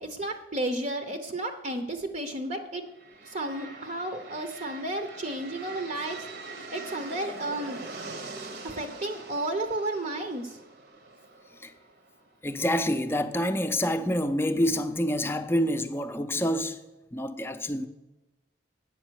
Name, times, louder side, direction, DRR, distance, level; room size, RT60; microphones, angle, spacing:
voice 1, 0.0-2.8 3.3-6.2 6.7-7.8 8.6-10.6, right 1 dB, 45° right, 0.8 m, -32 dB
sound 1, 2.9-12.7, right 3 dB, 65° right, 1.1 m, -43 dB
voice 2, 12.4-16.8 17.1-17.9, equal, 15° left, 0.5 m, -27 dB
8.9 x 7.1 x 6.3 m
head